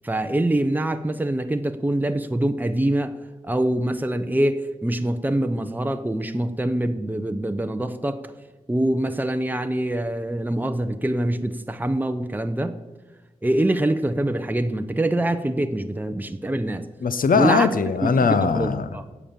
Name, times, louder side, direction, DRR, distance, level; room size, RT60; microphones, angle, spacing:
voice 1, 0.0-3.2 3.4-8.2 8.7-12.8 13.4-16.8 17.3-17.7 18.0-19.0, right 1 dB, 15° right, 8 dB, 0.8 m, -24 dB
voice 2, 17.0-19.1, left 5 dB, 90° left, 11 dB, 0.8 m, -21 dB
16.5 x 7.3 x 6.9 m, 1.2 s
wide cardioid pair, 85°, 14 cm